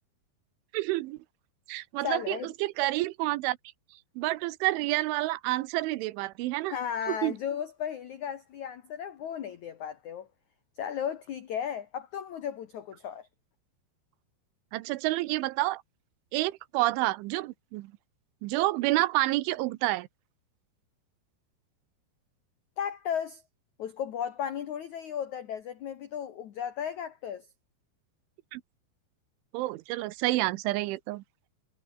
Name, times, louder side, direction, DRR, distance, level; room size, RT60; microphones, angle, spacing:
voice 1, 0.7-1.2 1.7-3.6 4.2-6.8 7.1-7.3 14.7-15.8 16.3-17.9 18.4-20.1 28.5-28.6 29.5-31.2, right 18 dB, 85° right, 3.2 m, -29 dB
voice 2, 2.0-2.5 6.7-10.3 10.8-13.3 22.8-23.4 23.8-27.5, left 8 dB, 85° left, 1.7 m, -35 dB
omnidirectional pair, 5.5 m